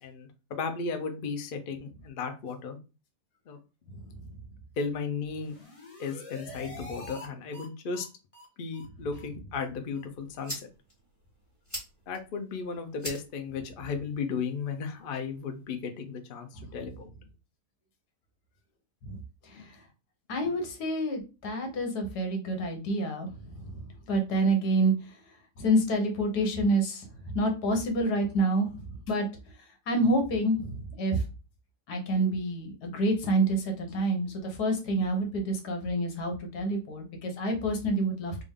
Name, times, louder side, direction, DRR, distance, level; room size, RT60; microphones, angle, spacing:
voice 1, 0.0-2.8 3.5-3.6 4.8-5.5 6.0-8.1 8.6-10.7 12.1-17.1 19.6-19.7, left 5 dB, 60° left, 6 dB, 0.5 m, -35 dB
sound 1, 5.2-7.3 7.5-7.7 7.9-8.1 8.3-8.5 8.7-8.9 9.1-9.3 9.5-9.6 9.9-10.0 10.3-10.4, left 2 dB, 25° left, 0.9 m, -46 dB
sound 2, 9.8-15.8, equal, 10° left, 1.6 m, -46 dB
voice 2, 19.1-19.6 20.3-24.9 25.6-27.1 27.3-29.3 29.9-31.2 31.9-38.4, right 1 dB, 80° left, 3 dB, 1.5 m, -28 dB
3.5 x 2.5 x 3.5 m, 0.31 s
omnidirectional pair, 1.7 m